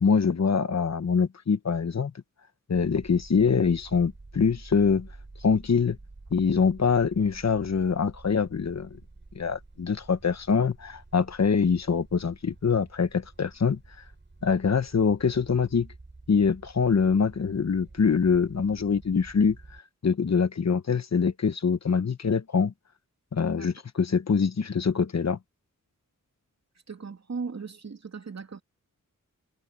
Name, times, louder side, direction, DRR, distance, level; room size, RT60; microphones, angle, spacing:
voice 1, 0.0-2.1 2.7-5.1 5.4-6.0 6.3-8.9 9.3-13.8 14.4-15.9 16.3-19.6 20.0-22.7 23.3-25.4, left 5 dB, 55° left, 1.1 m, -24 dB
sound 1, 2.7-19.8, right 3 dB, 35° right, 7.5 m, -49 dB
voice 2, 26.9-28.6, right 5 dB, 55° right, 2.7 m, -37 dB
wide cardioid pair, 85°, 32 cm